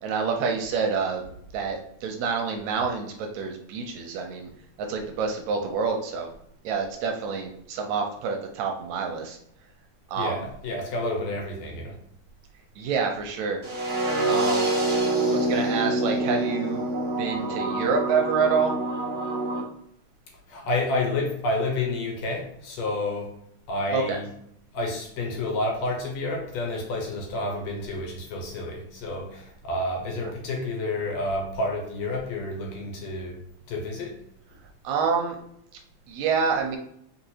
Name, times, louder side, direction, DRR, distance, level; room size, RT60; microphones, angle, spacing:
voice 1, 0.0-1.2 1.5-4.5 4.9-6.3 6.7-9.4 10.1-10.3 12.8-13.6 14.3-14.7 15.2-16.8 17.2-18.7 23.9-24.2 34.8-35.4 36.1-36.8, right 5 dB, 80° right, 3 dB, 1.8 m, -27 dB
voice 2, 10.2-12.0 20.5-23.4 23.7-24.3 24.7-33.4 33.7-34.2, left 2 dB, 70° left, 0 dB, 1.9 m, -29 dB
sound 1, 13.6-19.6, right 1 dB, 55° right, 0.6 m, -26 dB
4.6 x 3.9 x 2.7 m, 0.73 s
omnidirectional pair, 3.5 m